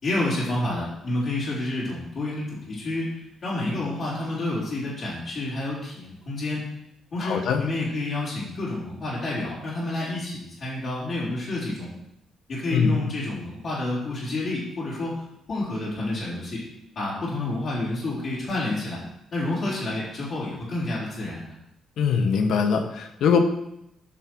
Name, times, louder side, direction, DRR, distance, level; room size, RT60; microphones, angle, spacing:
voice 1, 0.0-3.1 3.4-6.7 7.1-11.9 12.5-15.2 15.5-16.6 17.0-19.0 19.3-21.5, left 2 dB, 55° left, -8 dB, 4.0 m, -29 dB
voice 2, 7.2-7.6 12.7-12.9 22.0-23.4, left 6 dB, 75° left, 6 dB, 1.2 m, -22 dB
10.5 x 6.1 x 4.7 m, 0.80 s
cardioid pair, 90°, 0 cm